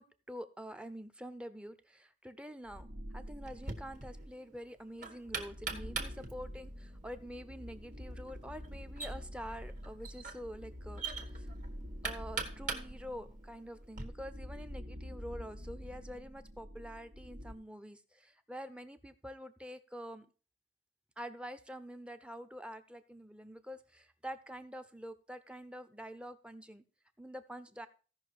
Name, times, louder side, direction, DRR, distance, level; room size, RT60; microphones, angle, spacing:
voice 1, 0.0-2.9 3.1-11.0 11.3-11.5 12.0-20.3 21.2-26.8 27.2-27.9, equal, 5° right, 11 dB, 0.6 m, -46 dB
sound 1, 2.7-4.4 5.0-17.5, equal, 85° right, 1.8 m, -47 dB
Knock, 3.4-14.0, right 4 dB, 45° right, 1.5 m, -44 dB
15.5 x 5.7 x 4.6 m, 0.38 s
head